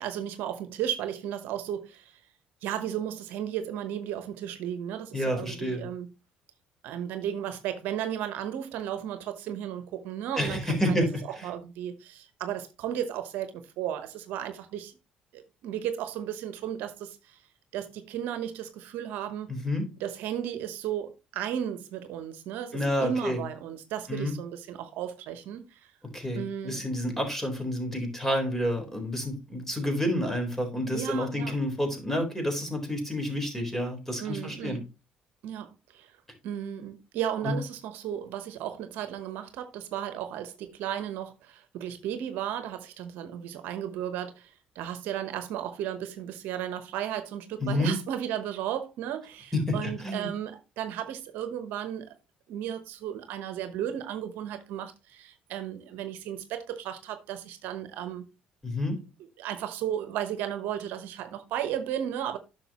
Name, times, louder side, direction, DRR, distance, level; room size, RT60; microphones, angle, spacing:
voice 1, 0.0-2.2 2.6-6.1 6.8-15.0 15.3-17.4 17.7-19.5 20.0-25.9 26.3-26.9 30.9-31.5 34.2-34.8 35.4-36.2 36.4-52.1 52.5-58.2 59.4-62.4, right 10 dB, 75° right, 0.9 m, -34 dB
voice 2, 5.1-5.8 10.3-11.5 19.5-19.9 22.7-23.4 24.1-24.3 26.1-34.8 37.4-37.6 47.6-48.0 49.5-50.3 58.6-59.0, left 1 dB, 10° left, 4.0 m, -29 dB
10.0 x 6.3 x 2.9 m
hypercardioid pair, 60°, 3 cm